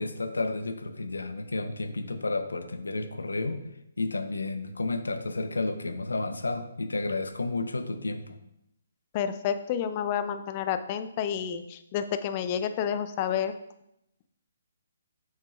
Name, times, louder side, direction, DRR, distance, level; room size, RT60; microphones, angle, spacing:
voice 1, 0.0-3.6 4.0-8.4, left 2 dB, 75° left, 8 dB, 0.7 m, -31 dB
voice 2, 9.1-13.5, left 8 dB, 30° left, 10 dB, 0.5 m, -30 dB
7.5 x 5.6 x 2.4 m, 0.81 s
figure-of-eight pair, 135°, 0 cm